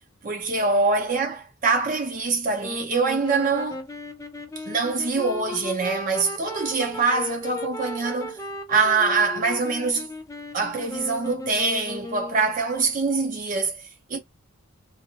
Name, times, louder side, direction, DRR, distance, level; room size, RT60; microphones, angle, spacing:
voice 1, 0.2-3.8 4.6-8.4 8.7-10.1 10.5-14.2, right 4 dB, 40° right, 0.6 m, -24 dB
sound 1, 2.6-12.6, left 2 dB, 15° left, 0.5 m, -36 dB
2.6 x 2.1 x 3.0 m
head